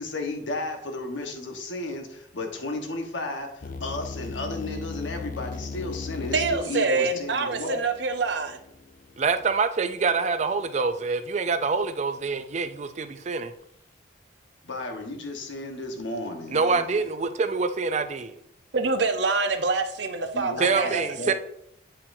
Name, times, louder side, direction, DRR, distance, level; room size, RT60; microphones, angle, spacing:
voice 1, 0.0-7.8 14.6-17.0 20.3-21.3, left 2 dB, 75° left, 1.3 m, -33 dB
sound 1, 3.6-9.5, left 4 dB, 45° left, 0.4 m, -38 dB
voice 2, 6.3-8.6 18.7-21.0, right 4 dB, 65° right, 0.7 m, -25 dB
voice 3, 9.2-13.5 16.5-18.4 20.6-21.3, right 4 dB, 35° right, 0.4 m, -25 dB
8.5 x 5.6 x 2.7 m
head